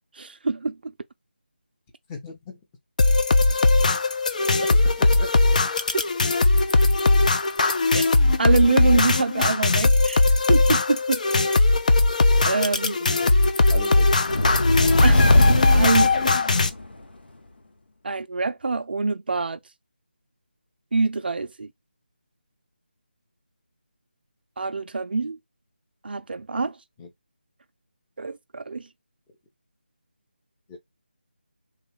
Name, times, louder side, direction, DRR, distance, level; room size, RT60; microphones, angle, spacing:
voice 1, 0.1-0.9 7.9-8.1 8.4-10.2 10.5-11.2 12.4-13.2 15.0-15.2 15.5-16.4 18.0-19.6 20.9-21.7 24.6-25.4 26.0-26.8 28.2-28.8, right 3 dB, 65° right, 0.4 m, -25 dB
voice 2, 2.1-2.6 4.6-5.4 13.2-13.4 13.7-14.1 14.9-15.1 27.0-27.1 30.7-30.8, left 1 dB, 15° left, 0.7 m, -37 dB
sound 1, 3.0-16.7, left 3 dB, 45° left, 0.5 m, -19 dB
sound 2, 14.2-16.9, left 1 dB, 70° left, 0.8 m, -21 dB
3.2 x 2.3 x 3.2 m
figure-of-eight pair, 165°, 6 cm